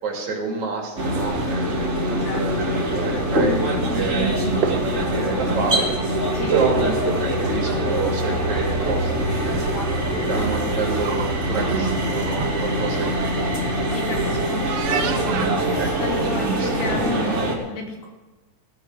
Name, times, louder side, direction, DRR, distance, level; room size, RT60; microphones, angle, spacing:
voice 1, 0.0-2.6 2.9-5.9 6.5-9.5 10.2-13.5 14.1-14.3 14.7-14.9 15.8-16.2 16.6-16.7, right 4 dB, 60° right, 0 dB, 4.0 m, -29 dB
sound 1, 1.0-17.5, right 1 dB, 50° left, 2.1 m, -32 dB
sound 2, 1.0-17.6, right 1 dB, 25° right, 2.3 m, -24 dB
sound 3, 1.2-17.1, right 7 dB, 75° right, 2.6 m, -33 dB
voice 2, 2.2-2.7 6.3-6.6 13.9-14.7 15.4-18.1, left 5 dB, 80° left, 0 dB, 4.5 m, -33 dB
17.0 x 12.5 x 5.0 m, 1.2 s
omnidirectional pair, 3.8 m